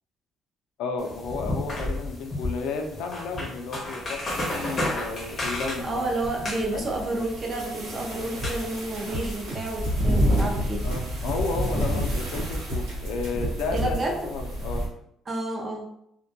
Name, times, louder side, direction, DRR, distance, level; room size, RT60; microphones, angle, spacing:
voice 1, 0.8-6.0 6.7-6.9 10.8-14.9, left 3 dB, 90° left, 3 dB, 0.4 m, -32 dB
sound 1, 1.0-9.0, left 1 dB, 25° left, 0.6 m, -33 dB
sound 2, 4.3-14.9, equal, 50° right, 0.7 m, -30 dB
voice 2, 5.8-10.8 13.7-14.1 15.3-15.9, right 2 dB, 25° right, -1 dB, 0.4 m, -30 dB
sound 3, 8.4-14.1, equal, 80° right, 1.0 m, -33 dB
2.1 x 2.1 x 2.7 m, 0.75 s
cardioid pair, 180°, 0 cm